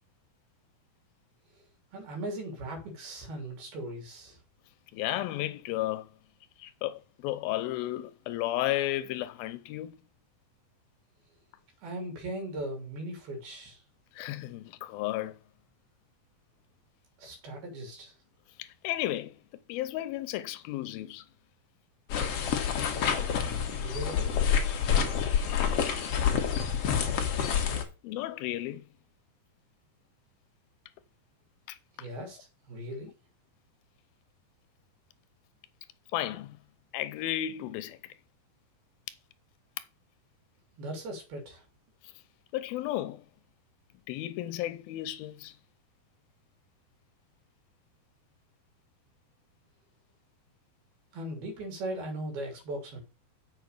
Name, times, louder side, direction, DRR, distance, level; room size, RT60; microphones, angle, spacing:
voice 1, 1.9-4.4 11.8-13.8 17.2-18.1 23.4-24.4 32.0-33.1 40.7-41.6 51.1-53.0, right 1 dB, 90° right, 5.0 m, -39 dB
voice 2, 4.9-6.1 6.6-10.0 14.2-15.4 18.6-19.4 19.7-21.2 28.0-28.9 31.7-31.8 32.2-32.3 36.1-36.6 36.9-38.0 42.5-43.3 44.1-45.5, left 14 dB, 90° left, 2.5 m, -33 dB
sound 1, 22.1-27.8, left 7 dB, 55° left, 1.8 m, -28 dB
8.0 x 5.1 x 6.5 m
omnidirectional pair, 4.3 m